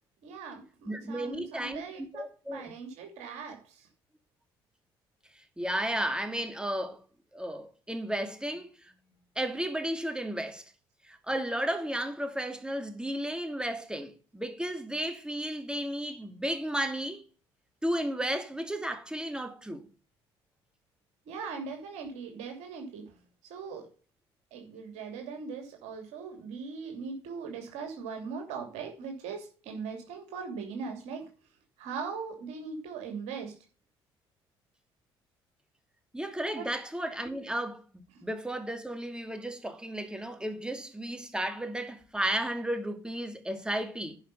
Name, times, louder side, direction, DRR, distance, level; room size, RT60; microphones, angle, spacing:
voice 1, 0.2-3.9 21.3-23.2 23.5-23.9 24.5-31.3 31.8-33.5 36.5-36.7, right 5 dB, 70° right, 2.9 m, -40 dB
voice 2, 0.9-1.8 2.2-2.7 5.6-7.0 7.3-8.9 9.4-10.6 11.0-17.2 17.8-19.8 36.1-44.2, right 1 dB, 5° right, 2.5 m, -33 dB
10.5 x 5.8 x 5.6 m
hypercardioid pair, 60°, 12 cm